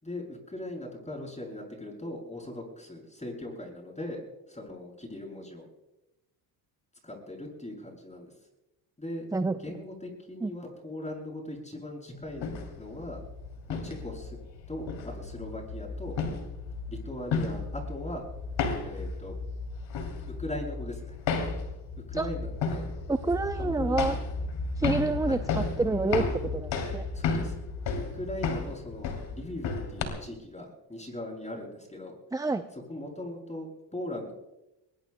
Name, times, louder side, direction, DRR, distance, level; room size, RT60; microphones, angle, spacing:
voice 1, 0.0-5.7 7.0-8.3 9.0-9.3 9.6-13.2 13.7-14.4 14.7-16.2 16.9-18.2 18.8-19.3 20.4-21.2 22.1-22.9 23.5-24.1 25.2-25.5 27.1-27.5 28.1-32.2 32.7-34.3, left 1 dB, 15° left, -1 dB, 7.4 m, -39 dB
sound 1, 12.3-30.0, left 4 dB, 70° left, 3.0 m, -33 dB
voice 2, 23.1-24.2 24.8-26.2 26.5-27.1 32.3-32.6, right 3 dB, 10° right, 10 dB, 0.5 m, -28 dB
23.0 x 21.0 x 2.2 m, 0.94 s
supercardioid pair, 75°, 47 cm